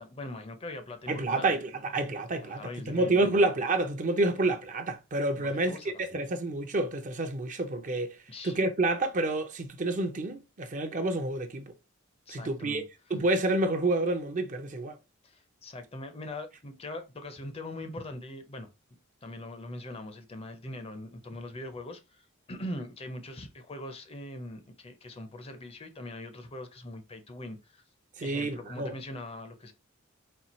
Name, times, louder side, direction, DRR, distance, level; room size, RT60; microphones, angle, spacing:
voice 1, 0.0-1.5 2.4-3.4 5.4-6.2 8.3-8.6 12.3-12.8 15.2-18.7 19.2-27.8 28.2-29.7, left 1 dB, 30° left, 0.6 m, -42 dB
voice 2, 1.1-8.2 8.4-11.7 12.3-12.8 13.1-15.0 28.2-29.0, right 2 dB, 40° right, 0.6 m, -29 dB
4.3 x 2.3 x 4.1 m
head